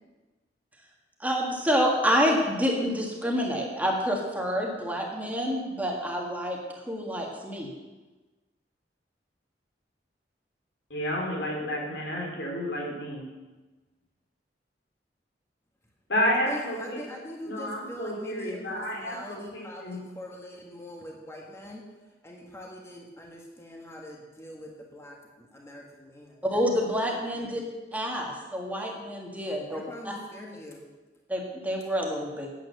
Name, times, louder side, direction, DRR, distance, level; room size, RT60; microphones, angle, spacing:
voice 1, 1.2-6.6 6.9-7.7 26.4-27.6 27.9-30.1 31.3-32.5, equal, 10° right, -1 dB, 1.8 m, -28 dB
voice 2, 10.9-13.2 16.1-17.0 17.5-20.0, equal, 90° left, -2 dB, 3.8 m, -30 dB
voice 3, 16.5-21.8 22.2-26.4 27.2-27.6 29.7-30.9, equal, 15° left, -1 dB, 1.5 m, -43 dB
9.2 x 8.9 x 6.5 m, 1.2 s
head